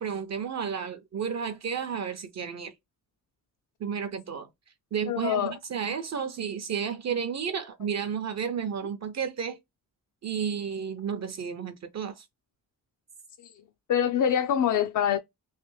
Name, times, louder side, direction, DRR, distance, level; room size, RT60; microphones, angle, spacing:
voice 1, 0.0-2.7 3.8-4.5 4.9-9.6 10.2-12.2, right 7 dB, 50° right, 0.6 m, -32 dB
voice 2, 5.1-5.5 13.4-13.5 13.9-15.2, left 9 dB, 60° left, 0.5 m, -25 dB
3.2 x 2.8 x 3.0 m
wide cardioid pair, 145°, 34 cm